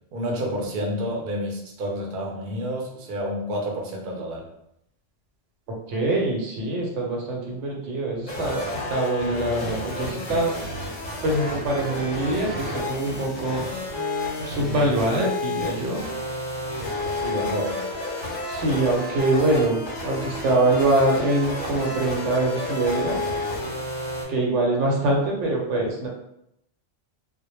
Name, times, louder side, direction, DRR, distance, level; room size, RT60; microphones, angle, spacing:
voice 1, 0.1-4.4 17.2-17.8, equal, 55° right, -1 dB, 0.6 m, -29 dB
voice 2, 5.9-10.5 11.2-13.8 14.4-16.0 18.5-23.2 24.3-26.1, right 2 dB, 80° right, -1 dB, 0.9 m, -24 dB
sound 1, 8.3-24.3, left 2 dB, 45° left, 0.7 m, -31 dB
2.1 x 2.0 x 3.0 m, 0.80 s
omnidirectional pair, 1.2 m